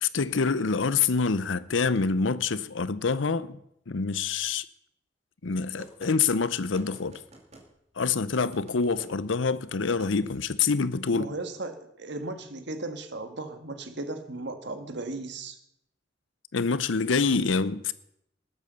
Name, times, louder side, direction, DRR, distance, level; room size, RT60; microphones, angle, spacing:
voice 1, 0.0-3.6 3.9-4.6 5.4-7.2 8.0-11.3 16.5-17.9, left 5 dB, 75° left, 0.7 m, -26 dB
sound 1, 5.8-6.1 6.7-7.7 8.3-9.1 9.8-10.1, right 2 dB, 35° right, 2.6 m, -49 dB
voice 2, 11.1-15.6, right 2 dB, 65° right, 1.7 m, -36 dB
19.0 x 8.2 x 6.9 m
head